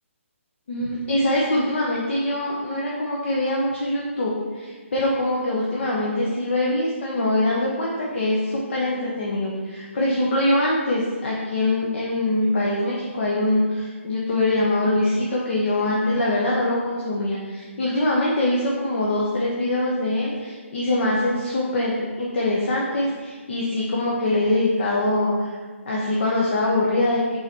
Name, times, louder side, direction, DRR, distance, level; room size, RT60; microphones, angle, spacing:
voice 1, 0.7-25.6 25.9-27.4, left 1 dB, 55° left, -4 dB, 1.1 m, -23 dB
5.8 x 4.1 x 4.3 m, 1.5 s
hypercardioid pair, 150°, 7 cm